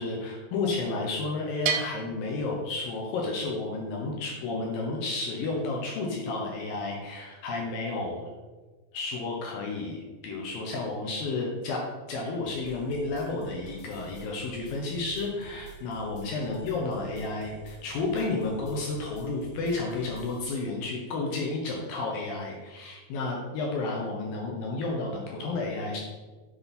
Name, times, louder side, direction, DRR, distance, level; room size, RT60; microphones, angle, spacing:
voice 1, 0.0-8.3 8.9-11.8 12.1-26.0, left 3 dB, 70° left, -1 dB, 2.6 m, -32 dB
Bell, 1.7-3.4, right 7 dB, 90° right, 1.9 m, -33 dB
sound 1, 12.4-20.4, right 4 dB, 90° left, 1.4 m, -48 dB
8.0 x 5.3 x 4.1 m, 1.3 s
omnidirectional pair, 4.6 m